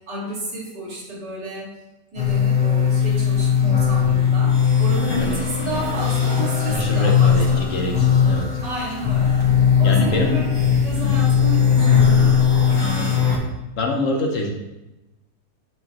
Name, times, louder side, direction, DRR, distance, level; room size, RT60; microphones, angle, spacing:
voice 1, 0.1-1.7 2.1-7.6 8.6-9.4 9.8-10.5 10.8-13.1, right 1 dB, 85° right, -4 dB, 2.6 m, -31 dB
sound 1, 2.2-13.4, left 7 dB, 75° left, 2.4 m, -18 dB
voice 2, 5.1-5.8 6.6-8.5 9.8-10.3 11.0-11.2 12.8-13.1 13.8-14.5, left 2 dB, 55° left, 2 dB, 1.2 m, -26 dB
7.8 x 5.5 x 3.0 m, 1.0 s
omnidirectional pair, 1.8 m